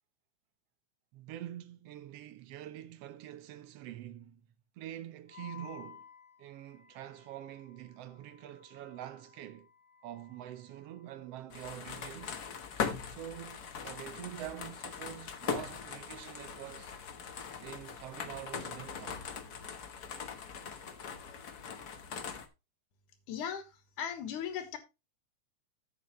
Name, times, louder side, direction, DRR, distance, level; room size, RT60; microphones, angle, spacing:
voice 1, 1.1-4.4 4.8-6.1 6.4-9.7 10.0-12.4 13.0-16.9 17.6-19.2, right 12 dB, 70° right, 1.6 m, -46 dB
Wind instrument woodwind instrument, 5.3-11.4, left 8 dB, 35° right, 2.1 m, -56 dB
sound 1, 11.5-22.5, left 6 dB, 60° left, 1.0 m, -41 dB
voice 2, 23.3-23.7 24.0-24.8, left 8 dB, 90° left, 3.0 m, -37 dB
11.5 x 8.3 x 3.0 m
omnidirectional pair, 3.5 m